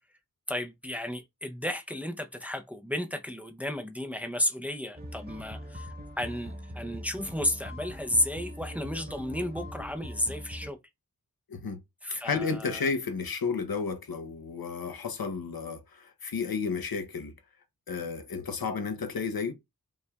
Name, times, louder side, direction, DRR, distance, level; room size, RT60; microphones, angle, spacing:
voice 1, 0.5-10.8 12.0-12.9, left 1 dB, 5° right, 0.6 m, -33 dB
sound 1, 5.0-10.7, equal, 25° right, 1.4 m, -42 dB
voice 2, 11.5-11.8 12.1-17.3 17.9-19.5, left 5 dB, 80° left, 0.9 m, -32 dB
5.3 x 3.3 x 2.3 m
wide cardioid pair, 75°, 35 cm